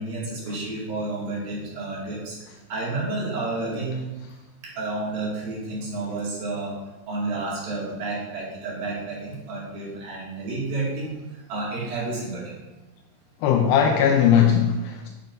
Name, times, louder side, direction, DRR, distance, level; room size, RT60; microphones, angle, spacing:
voice 1, 0.0-2.4 2.7-4.1 4.8-6.8 7.1-11.2 11.5-12.6, right 2 dB, 60° right, -6 dB, 3.9 m, -30 dB
voice 2, 13.4-15.1, left 8 dB, 85° left, 4 dB, 2.2 m, -19 dB
11.0 x 7.2 x 2.7 m, 1.1 s
omnidirectional pair, 4.7 m